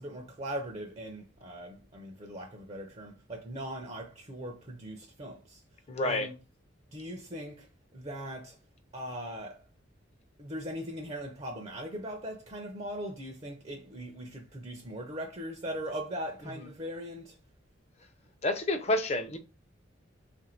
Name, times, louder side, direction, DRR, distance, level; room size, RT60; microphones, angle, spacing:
voice 1, 0.0-5.6 6.0-6.3 6.9-8.6 8.9-9.6 10.4-17.4, equal, 35° right, 0.5 m, -40 dB
voice 2, 5.9-6.3 18.4-19.4, left 2 dB, 35° left, 0.5 m, -29 dB
3.5 x 2.5 x 4.3 m
head